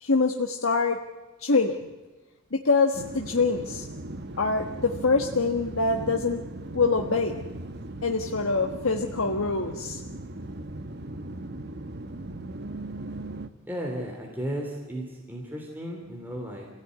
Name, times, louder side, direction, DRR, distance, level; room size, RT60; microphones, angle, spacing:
voice 1, 0.0-1.0 1.4-1.9 2.5-3.9 4.4-6.4 6.7-7.4 8.0-10.0, left 4 dB, 85° left, 3 dB, 1.5 m, -25 dB
sound 1, 2.9-13.5, right 2 dB, 55° right, 1.1 m, -38 dB
voice 2, 13.7-16.7, equal, 10° right, -1 dB, 3.3 m, -34 dB
27.0 x 17.0 x 9.6 m, 1.2 s
head